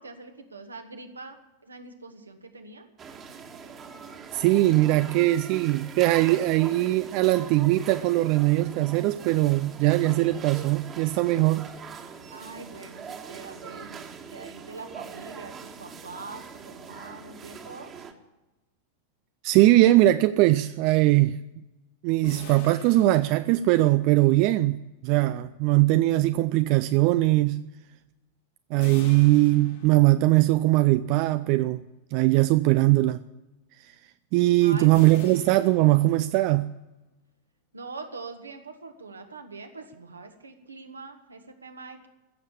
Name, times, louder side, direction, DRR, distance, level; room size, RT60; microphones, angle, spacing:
voice 1, 0.0-1.4 1.6-2.9 12.3-17.9 34.6-35.3 37.7-42.1, right 3 dB, 80° right, 1.6 m, -43 dB
sound 1, 3.0-18.1, right 6 dB, 25° right, 1.6 m, -42 dB
voice 2, 4.3-11.7 19.4-21.4 22.0-27.6 28.7-31.8 32.1-33.2 34.3-36.7, right 17 dB, 45° right, 0.4 m, -21 dB
sound 2, 22.2-24.1 28.8-30.4 34.9-36.6, left 6 dB, 55° left, 2.1 m, -45 dB
15.5 x 7.3 x 10.0 m
figure-of-eight pair, 90°, 0 cm